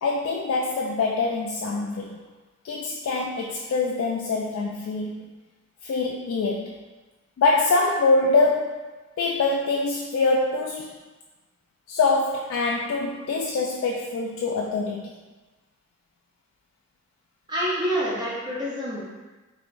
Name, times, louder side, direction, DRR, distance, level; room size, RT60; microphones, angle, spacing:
voice 1, 0.0-2.2 2.6-5.3 5.8-6.8 7.4-10.9 11.9-15.1, left 3 dB, 70° left, -1 dB, 0.3 m, -24 dB
voice 2, 17.5-19.1, equal, 20° right, -7 dB, 0.7 m, -27 dB
3.7 x 3.1 x 2.5 m, 1.2 s
head